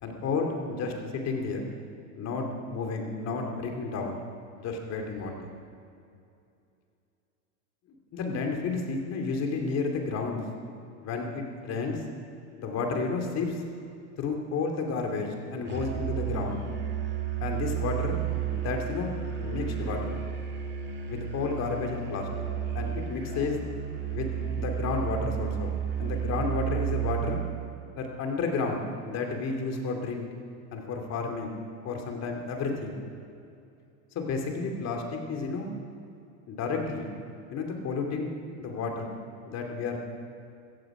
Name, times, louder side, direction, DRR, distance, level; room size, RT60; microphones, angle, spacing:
voice 1, 0.0-1.6 2.1-4.2 4.6-5.5 8.1-10.4 11.0-12.0 12.6-13.6 14.2-16.6 17.4-18.2 18.5-19.1 19.4-20.2 21.1-22.3 22.7-23.6 24.1-27.4 28.0-30.3 30.7-31.6 31.8-33.0 34.1-35.7 36.5-37.1 37.5-39.1 39.4-40.0, left 4 dB, 35° left, 2 dB, 2.7 m, -31 dB
Musical instrument, 15.7-27.5, right 9 dB, 25° right, 2.1 m, -32 dB
15.5 x 14.5 x 5.0 m, 2.5 s
supercardioid pair, 120°, 44 cm